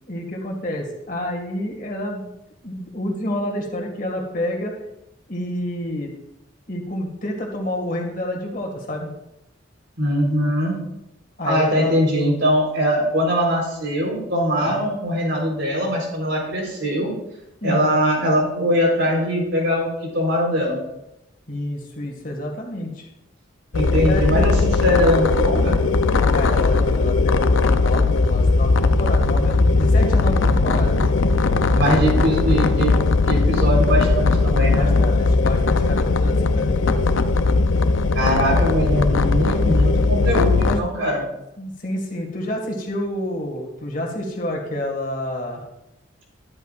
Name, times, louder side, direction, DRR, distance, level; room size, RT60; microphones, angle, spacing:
voice 1, 0.1-2.3 2.6-4.7 5.3-6.1 6.7-9.1 11.4-11.9 14.6-14.8 17.6-18.0 21.5-23.1 23.9-24.7 26.3-31.0 31.8-32.4 34.7-37.0 40.6-40.8 41.6-45.6, left 1 dB, 40° left, 0 dB, 1.9 m, -29 dB
voice 2, 10.0-10.7 11.4-17.1 17.6-20.8 23.7-25.8 31.7-34.9 38.1-41.2, equal, 65° right, -1 dB, 3.9 m, -21 dB
sound 1, 23.7-40.8, left 3 dB, 75° left, 0.6 m, -18 dB
13.0 x 11.0 x 2.5 m, 0.87 s
head